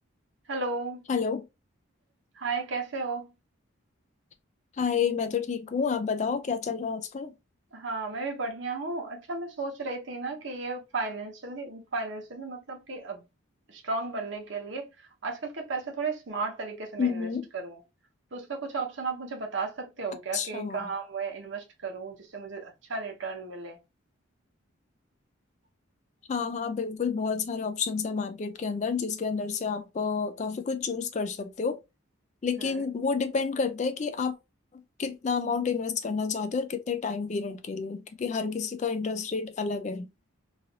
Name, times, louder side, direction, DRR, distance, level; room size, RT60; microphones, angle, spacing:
voice 1, 0.5-1.0 2.4-3.3 7.7-13.2 13.7-14.9 15.2-17.3 17.5-17.8 18.3-23.8 32.6-32.8, right 3 dB, 60° right, 0.9 m, -34 dB
voice 2, 1.1-1.5 4.8-7.3 17.0-17.5 20.3-20.8 26.3-31.8 32.4-34.4 35.0-40.1, left 5 dB, 35° left, 0.3 m, -29 dB
3.1 x 2.5 x 2.7 m
head